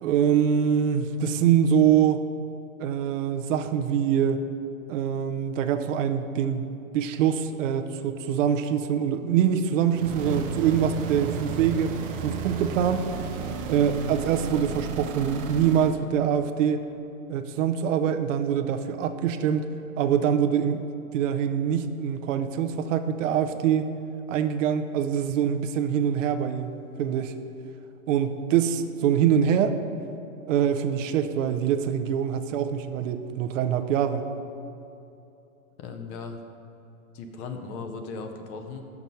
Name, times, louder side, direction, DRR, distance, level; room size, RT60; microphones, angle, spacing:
voice 1, 0.0-2.2 2.8-4.4 4.9-11.9 12.2-13.1 13.7-16.8 17.3-19.7 20.0-20.8 21.1-23.9 24.3-27.3 28.1-29.8 30.5-34.3, right 8 dB, 65° right, 7 dB, 0.6 m, -24 dB
sound 1, 9.9-16.0, right 6 dB, 20° right, 0.3 m, -33 dB
voice 2, 35.8-36.4 37.1-38.9, left 4 dB, 35° left, 5 dB, 0.6 m, -37 dB
6.1 x 5.9 x 5.3 m, 2.8 s
hypercardioid pair, 120°, 42 cm